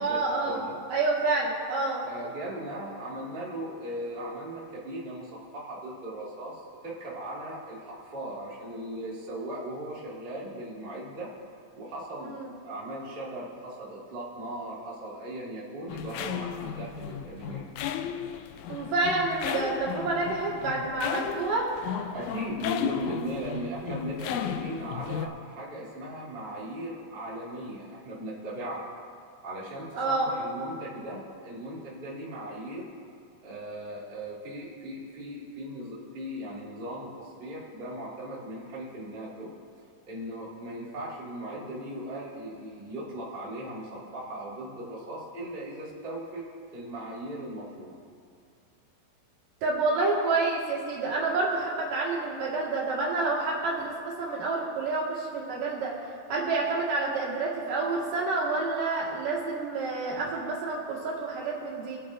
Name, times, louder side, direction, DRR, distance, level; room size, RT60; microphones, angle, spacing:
voice 1, 0.0-0.6 0.9-2.0 12.2-12.5 18.7-21.7 29.9-30.3 49.6-55.9 56.3-62.0, right 3 dB, 70° right, -4 dB, 3.5 m, -28 dB
voice 2, 2.0-11.3 11.7-12.3 12.6-17.7 22.1-28.9 29.4-32.9 33.4-39.5 40.1-46.4 46.7-48.0, right 1 dB, 20° right, -7 dB, 1.8 m, -38 dB
sound 1, 15.9-25.3, left 9 dB, 85° left, 1.7 m, -35 dB
24.5 x 8.6 x 2.6 m, 2.3 s
omnidirectional pair, 3.9 m